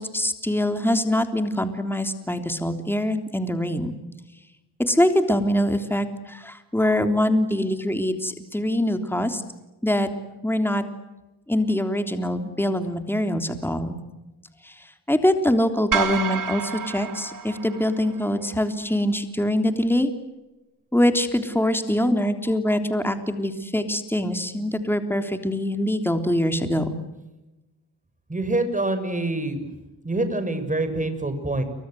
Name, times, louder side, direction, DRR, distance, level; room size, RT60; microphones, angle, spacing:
voice 1, 0.0-3.9 4.8-9.4 9.8-10.1 10.4-10.8 11.5-13.9 14.6-14.7 15.1-20.1 20.9-26.9, left 1 dB, 5° left, 7 dB, 3.5 m, -23 dB
sound 1, 15.9-18.3, right 6 dB, 50° right, 3.1 m, -28 dB
voice 2, 28.3-29.7 30.0-31.6, right 2 dB, 20° right, 9 dB, 6.7 m, -25 dB
29.0 x 25.0 x 7.9 m, 1.0 s
cardioid pair, 75°, 40 cm